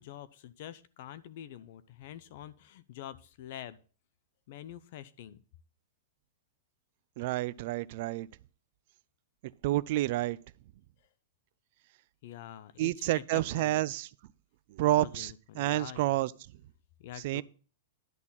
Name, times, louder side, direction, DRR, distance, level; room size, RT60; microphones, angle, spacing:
voice 1, 0.0-3.8 4.5-5.4 12.2-13.8 14.8-16.2 17.0-17.4, left 11 dB, 45° left, 0.6 m, -46 dB
voice 2, 7.2-8.3 9.6-10.4 12.8-14.1 14.7-16.3 17.2-17.4, right 16 dB, 40° right, 0.4 m, -29 dB
10.5 x 4.1 x 7.2 m
supercardioid pair, 175°, 0 cm